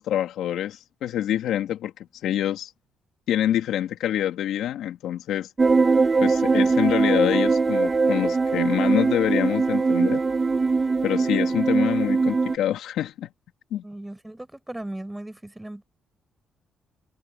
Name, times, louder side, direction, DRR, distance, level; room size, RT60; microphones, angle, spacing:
voice 1, 0.0-1.9 2.2-2.7 3.3-5.5 6.2-10.2 11.0-13.3 13.7-13.8, left 11 dB, 80° left, 2.9 m, -26 dB
sound 1, 5.6-12.6, right 4 dB, 30° right, 1.3 m, -21 dB
voice 2, 13.8-15.8, right 1 dB, 10° right, 6.7 m, -37 dB
cardioid pair, 90°, 0 cm